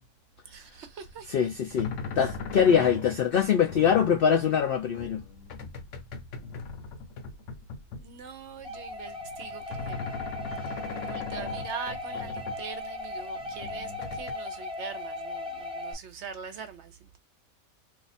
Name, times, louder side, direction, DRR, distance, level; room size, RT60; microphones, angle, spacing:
voice 1, 0.5-1.3 8.0-10.0 10.6-10.7 11.0-17.2, right 6 dB, 65° right, 0.8 m, -42 dB
sound 1, 1.0-8.3 8.6-12.6 13.0-14.3, left 4 dB, 65° left, 1.0 m, -40 dB
voice 2, 1.3-5.2, left 7 dB, 80° left, 0.5 m, -23 dB
sound 2, 8.6-15.9, left 2 dB, 5° right, 0.5 m, -37 dB
2.7 x 2.4 x 4.0 m
omnidirectional pair, 1.5 m